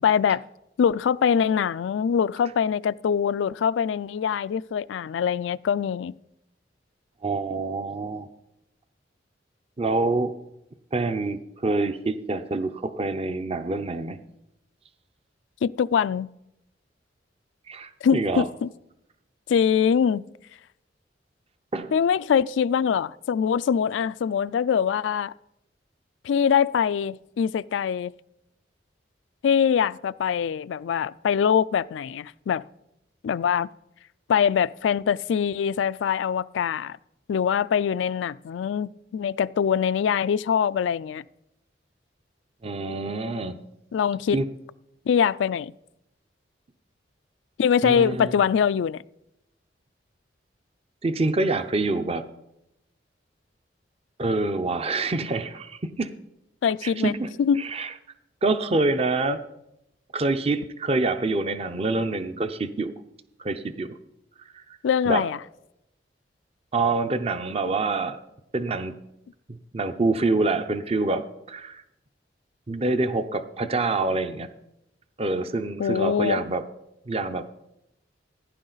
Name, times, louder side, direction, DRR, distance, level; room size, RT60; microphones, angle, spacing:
voice 1, 0.0-0.4 0.8-6.1 15.6-16.3 18.0-18.7 19.5-20.2 21.9-25.3 26.2-28.1 29.4-32.6 33.2-33.7 34.3-37.0 37.3-41.2 43.9-44.4 45.1-45.7 47.6-49.0 56.6-57.1 57.4-57.6 64.8-65.4 75.8-76.4, left 7 dB, 85° left, 0.3 m, -23 dB
voice 2, 7.2-8.3 9.8-10.3 10.9-14.2 17.7-18.5 21.7-21.9 42.6-43.6 44.3-44.5 47.8-48.3 51.0-52.2 54.2-56.1 56.8-57.3 57.6-57.9 58.4-59.4 60.1-62.9 63.4-63.9 64.5-64.6 65.1-65.2 66.7-68.2 68.5-69.0 69.5-71.8 72.7-74.5 75.2-76.6 77.1-77.5, right 3 dB, 35° right, 0.6 m, -26 dB
15.5 x 9.8 x 3.9 m
head